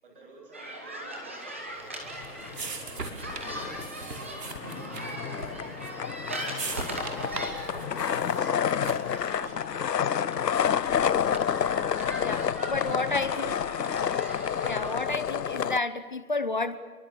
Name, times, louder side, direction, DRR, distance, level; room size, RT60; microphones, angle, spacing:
voice 1, 0.0-4.5 4.8-8.3 8.8-10.9 11.1-11.4 12.3-12.7 13.0-14.1, right 2 dB, 35° right, 1 dB, 7.5 m, -52 dB
sound 1, 0.5-14.9, right 1 dB, 10° right, 1.1 m, -40 dB
sound 2, 1.8-9.3, right 3 dB, 75° right, 5.8 m, -40 dB
sound 3, 2.2-3.0 3.3-15.8, left 8 dB, 80° left, 0.8 m, -29 dB
voice 2, 12.2-13.6 14.6-16.8, left 3 dB, 30° left, 12 dB, 1.0 m, -31 dB
29.0 x 23.5 x 7.1 m, 1.4 s
hypercardioid pair, 175°, 49 cm